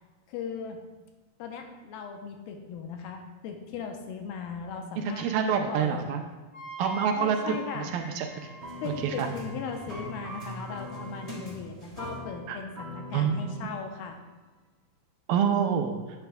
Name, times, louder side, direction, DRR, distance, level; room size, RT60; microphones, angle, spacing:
voice 1, 0.3-0.8 1.4-5.3 5.7-6.1 7.1-8.5 8.8-14.2, left 6 dB, 85° left, 4 dB, 2.7 m, -38 dB
voice 2, 5.0-6.2 6.8-8.3 9.2-9.3 12.5-12.6 13.1-13.6 15.3-15.9, right 7 dB, 80° right, 4 dB, 2.4 m, -27 dB
Wind instrument woodwind instrument, 6.5-11.5, right 1 dB, 35° left, 0.5 m, -46 dB
sound 1, 8.6-14.2, equal, 30° right, 0.7 m, -41 dB
11.5 x 8.3 x 2.3 m, 1.3 s
omnidirectional pair, 4.1 m